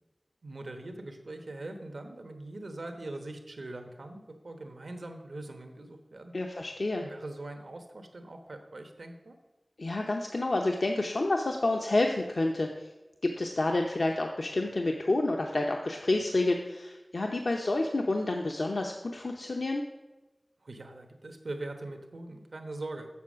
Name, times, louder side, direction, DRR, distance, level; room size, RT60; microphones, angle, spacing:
voice 1, 0.4-6.3 7.0-9.4 20.6-23.1, right 2 dB, 85° right, 5 dB, 1.1 m, -42 dB
voice 2, 6.3-7.0 9.8-12.7 13.2-19.8, left 2 dB, 75° left, 2 dB, 0.7 m, -29 dB
7.1 x 7.1 x 6.2 m, 1.1 s
wide cardioid pair, 50°, 0 cm